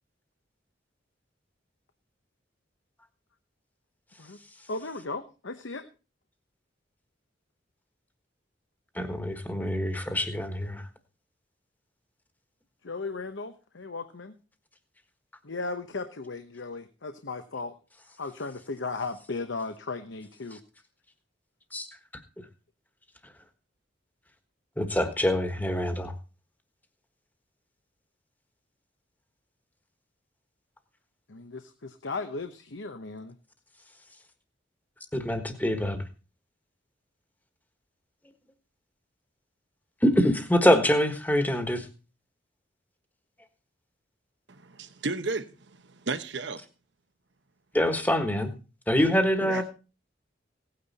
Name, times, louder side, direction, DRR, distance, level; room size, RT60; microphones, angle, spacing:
voice 1, 4.7-5.9 12.8-14.3 15.4-17.7 18.2-20.6 31.3-33.3 49.1-49.6, left 3 dB, 85° left, 1.0 m, -36 dB
voice 2, 8.9-10.8 21.7-21.9 24.8-26.1 35.1-36.0 40.0-41.9 47.7-48.5 48.9-49.6, equal, 10° left, 1.4 m, -25 dB
voice 3, 44.5-46.6 49.4-49.6, right 3 dB, 70° right, 1.1 m, -34 dB
17.5 x 9.3 x 4.2 m
head